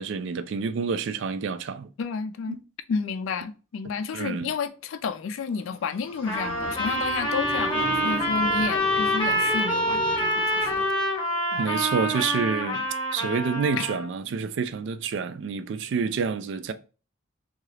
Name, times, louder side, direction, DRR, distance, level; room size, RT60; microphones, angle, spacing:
voice 1, 0.0-1.9 4.1-4.5 11.6-12.8 13.1-16.7, right 5 dB, 65° right, 0.3 m, -28 dB
voice 2, 2.0-2.6 2.9-10.9 11.5-11.8 12.6-12.8 13.8-13.9, left 5 dB, 75° left, 0.3 m, -31 dB
sound 1, 5.7-11.6, right 1 dB, 10° right, 0.5 m, -37 dB
Trumpet, 6.3-14.1, equal, 25° left, 0.8 m, -26 dB
2.8 x 2.4 x 3.1 m
head